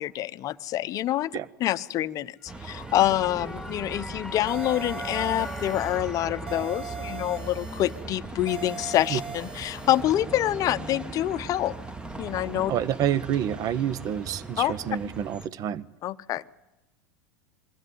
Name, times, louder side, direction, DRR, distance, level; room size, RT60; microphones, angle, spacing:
voice 1, 0.0-1.3 1.6-11.7 12.2-12.7 14.6-14.7 16.0-16.4, left 13 dB, 40° left, 0.7 m, -26 dB
sound 1, 2.4-9.4, left 2 dB, 5° left, 0.8 m, -43 dB
Bus, 2.5-15.5, right 3 dB, 10° right, 1.1 m, -39 dB
sound 2, 4.5-6.1 6.5-8.1 8.5-10.1, right 5 dB, 55° right, 2.2 m, -39 dB
voice 2, 12.7-15.8, right 10 dB, 40° right, 0.9 m, -28 dB
22.5 x 15.5 x 9.5 m
hypercardioid pair, 95°, 9 cm